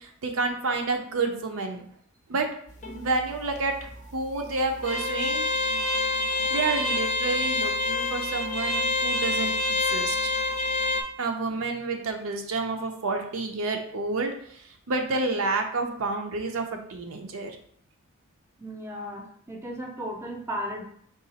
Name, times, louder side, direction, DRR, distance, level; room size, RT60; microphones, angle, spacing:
voice 1, 0.0-1.9 2.3-2.5 2.9-3.7 4.0-5.5 6.5-9.5 9.8-10.3 11.2-14.6 14.9-17.5, right 3 dB, 80° right, 4 dB, 0.6 m, -29 dB
sound 1, 2.7-11.0, left 2 dB, 35° left, 0.5 m, -28 dB
voice 2, 18.6-20.8, equal, 10° right, 0 dB, 0.6 m, -35 dB
3.8 x 2.4 x 4.0 m, 0.62 s
head